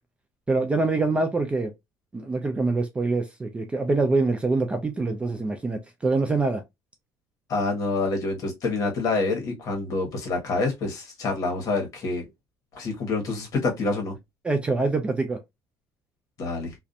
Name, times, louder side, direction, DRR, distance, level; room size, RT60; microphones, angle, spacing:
voice 1, 0.5-1.7 2.1-6.6 14.4-15.4, right 3 dB, 15° right, 0.3 m, -25 dB
voice 2, 7.5-12.3 12.7-14.1 16.4-16.7, left 3 dB, 45° left, 1.1 m, -27 dB
2.4 x 2.2 x 2.6 m
cardioid pair, 145°, 8 cm